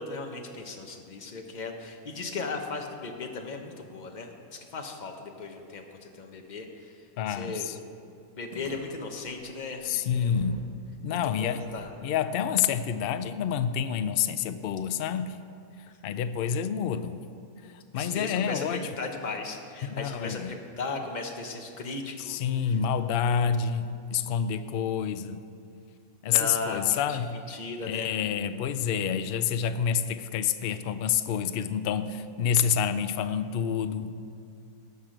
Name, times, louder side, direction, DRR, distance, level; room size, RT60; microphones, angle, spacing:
voice 1, 0.0-6.9 7.3-7.7 8.3-9.9 10.2-10.6 11.1-11.9 17.9-22.4 22.7-22.8 26.2-28.1, left 3 dB, 35° left, 3 dB, 0.9 m, -37 dB
voice 2, 7.2-7.8 9.8-10.6 11.0-11.7 12.0-15.3 16.0-17.2 17.9-18.8 19.8-20.5 22.2-25.4 26.2-27.4 27.8-34.1, left 8 dB, 75° left, 11 dB, 0.5 m, -28 dB
sound 1, 8.5-10.7 10.9-11.0 11.6-14.7, equal, 25° right, 1.4 m, -51 dB
17.0 x 6.1 x 5.0 m, 2.4 s
omnidirectional pair, 1.5 m